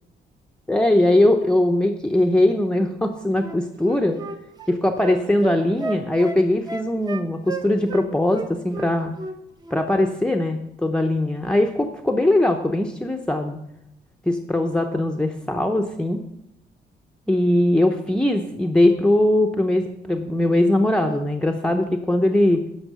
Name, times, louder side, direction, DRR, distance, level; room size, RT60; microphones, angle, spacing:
voice 1, 0.7-4.2 4.7-9.1 9.7-13.6 14.3-16.2 17.3-22.6, left 1 dB, 5° left, 3 dB, 0.7 m, -20 dB
Wind instrument woodwind instrument, 3.4-8.1 8.3-9.4 9.6-9.8, right 3 dB, 25° right, 0.9 m, -33 dB
11.0 x 6.0 x 6.7 m, 0.78 s
cardioid pair, 130°, 17 cm